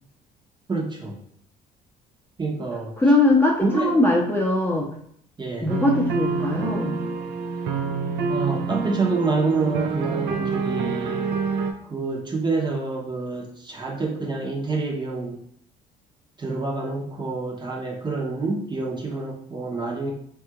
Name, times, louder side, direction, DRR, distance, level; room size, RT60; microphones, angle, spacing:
voice 1, 0.7-1.2 2.4-3.0 3.6-3.9 5.4-5.7 8.3-11.3 11.8-15.4 16.4-20.1, right 3 dB, 25° right, -1 dB, 0.7 m, -27 dB
voice 2, 3.0-4.9 5.6-7.0, left 2 dB, 10° left, -1 dB, 0.6 m, -20 dB
sound 1, 5.7-11.7, right 4 dB, 70° right, 0.4 m, -27 dB
3.4 x 2.4 x 2.8 m, 0.65 s
supercardioid pair, 80°, 19 cm